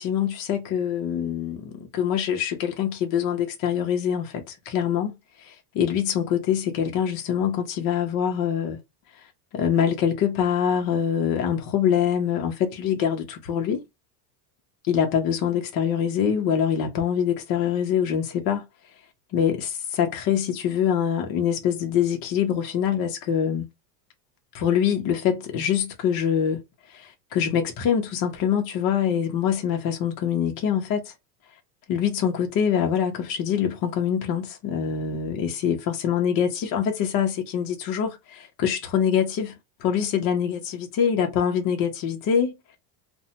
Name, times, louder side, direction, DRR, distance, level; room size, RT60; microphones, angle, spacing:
voice 1, 0.0-8.8 9.2-9.3 9.5-13.8 14.9-18.7 19.3-23.7 24.5-26.6 26.9-31.1 31.9-42.5, left 8 dB, 45° left, 0.7 m, -24 dB
2.5 x 2.1 x 2.8 m
supercardioid pair, 125°, 50 cm